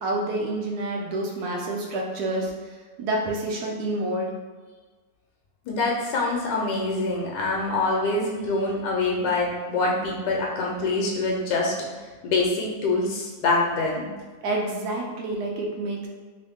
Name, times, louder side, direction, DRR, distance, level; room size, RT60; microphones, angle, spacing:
voice 1, 0.0-2.5 3.0-4.3 14.4-16.1, right 2 dB, 70° right, -1 dB, 1.0 m, -28 dB
voice 2, 5.6-14.1, left 3 dB, 80° left, -2 dB, 1.3 m, -25 dB
3.2 x 2.6 x 3.4 m, 1.4 s
omnidirectional pair, 1.9 m